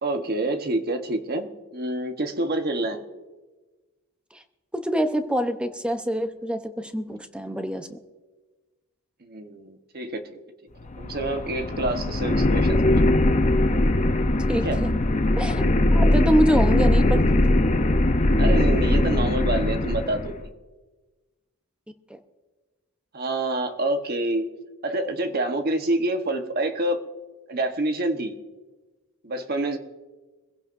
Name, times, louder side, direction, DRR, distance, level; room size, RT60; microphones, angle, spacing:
voice 1, 0.0-3.0 9.2-10.4 11.0-12.9 14.5-14.8 18.4-20.5 23.1-24.5 24.8-27.0 27.5-28.4 29.2-29.8, right 1 dB, 50° right, 6 dB, 1.2 m, -27 dB
voice 2, 4.7-8.0 14.5-14.9 15.4-17.2 22.1-22.2, equal, 5° right, 7 dB, 0.8 m, -25 dB
sound 1, 10.8-20.4, left 1 dB, 35° left, 0.7 m, -21 dB
24.5 x 16.0 x 2.6 m, 1.3 s
head